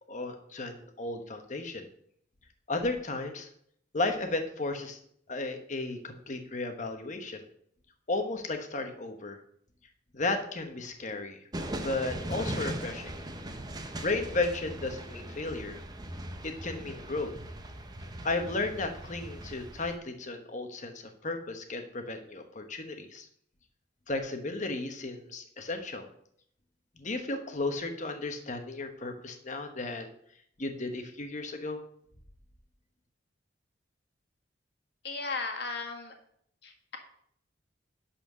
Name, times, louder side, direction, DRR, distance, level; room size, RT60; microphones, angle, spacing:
voice 1, 0.1-1.9 2.7-3.5 3.9-5.0 5.3-7.4 8.1-9.4 10.1-11.4 11.8-13.1 14.0-15.8 16.4-17.3 18.2-23.3 24.1-26.1 27.0-30.1 30.6-31.8, left 2 dB, 40° left, 6 dB, 1.1 m, -34 dB
sound 1, 11.5-20.0, right 1 dB, 20° right, 0.8 m, -39 dB
voice 2, 35.0-36.1 36.6-37.0, left 3 dB, 60° left, 3 dB, 1.8 m, -36 dB
11.0 x 4.3 x 6.2 m, 0.68 s
head